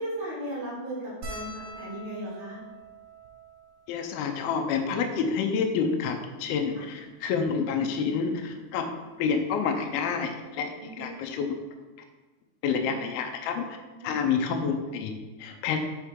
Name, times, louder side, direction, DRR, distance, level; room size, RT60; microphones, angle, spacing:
voice 1, 0.0-2.6 6.7-6.8 10.8-11.2 14.0-14.2, right 1 dB, 30° right, -8 dB, 0.9 m, -36 dB
sound 1, 1.2-5.8 6.6-6.7 6.9-7.1 8.3-8.5 10.0-10.1 10.3-10.5, right 1 dB, 60° right, 3.1 m, -45 dB
voice 2, 3.9-8.9 9.2-11.6 12.6-13.8 14.0-15.8, left 6 dB, 80° left, 4 dB, 2.4 m, -28 dB
6.7 x 4.5 x 3.6 m, 1.2 s
omnidirectional pair, 4.5 m